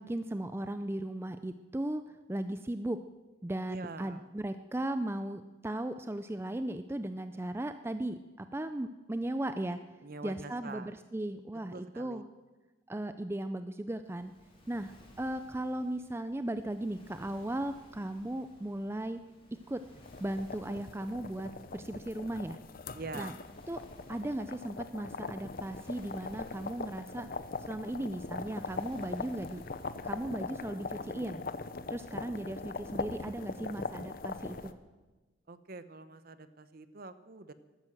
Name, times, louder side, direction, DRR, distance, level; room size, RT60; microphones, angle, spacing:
voice 1, 0.0-2.0 2.3-3.0 3.4-9.8 10.2-12.2 12.9-14.3 14.7-19.2 19.5-19.8 20.2-22.6 23.1-23.3 23.7-23.8 24.1-27.3 27.7-29.6 30.0-31.4 31.9-34.7, right 1 dB, 10° right, 10 dB, 0.4 m, -37 dB
voice 2, 3.7-4.2 10.0-11.0 11.7-12.2 22.9-23.4 35.5-37.5, right 3 dB, 50° right, 13 dB, 0.8 m, -45 dB
Waves surf, 14.0-31.5, left 1 dB, 25° left, 3.6 m, -60 dB
sound 1, 20.0-34.7, left 4 dB, 45° left, 0.7 m, -41 dB
13.5 x 12.5 x 7.8 m, 1.2 s
head